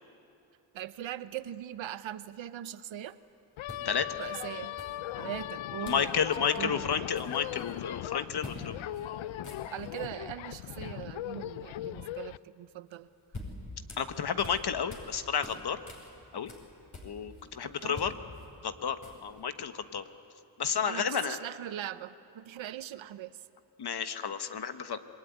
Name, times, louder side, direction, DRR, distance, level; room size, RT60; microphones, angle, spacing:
voice 1, 0.7-3.2 4.2-4.8 5.2-6.1 6.6-6.8 9.7-13.1 17.6-18.0 20.8-23.4, right 11 dB, 90° right, 14 dB, 0.9 m, -40 dB
sound 1, 3.0-3.1 3.7-4.3 4.8-5.4 5.8-6.1 6.4-6.6 6.9-7.8 8.4-8.6 8.9-9.1 9.3-10.0 12.9-15.1 15.4-17.4 17.8-19.4, left 2 dB, 40° left, 5.6 m, -47 dB
sound 2, 3.6-12.4, left 14 dB, 90° left, 0.6 m, -39 dB
voice 2, 5.8-8.8 14.0-15.8 16.3-16.5 17.0-18.1 18.6-20.0 20.6-21.4 23.8-25.0, left 7 dB, 55° left, 10 dB, 1.3 m, -31 dB
27.0 x 20.5 x 9.5 m, 2.6 s
cardioid pair, 75°, 45 cm